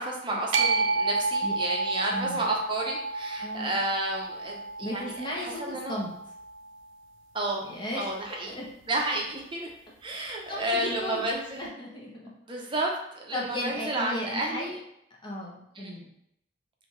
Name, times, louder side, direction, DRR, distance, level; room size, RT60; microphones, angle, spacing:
voice 1, 0.0-6.0 7.3-7.7 7.9-8.6 8.9-9.7 10.0-11.7 12.5-14.8 15.7-16.0, right 2 dB, 25° right, -1 dB, 0.8 m, -31 dB
sound 1, 0.5-6.8, right 3 dB, 75° right, 0.4 m, -30 dB
voice 2, 2.1-2.4 3.4-3.7 4.8-6.1 7.6-8.1 8.4-8.7 10.1-11.3 11.6-12.3 12.6-12.7 13.3-14.7 15.2-16.1, left 1 dB, 25° left, -3 dB, 1.0 m, -36 dB
3.4 x 2.8 x 4.5 m, 0.77 s
head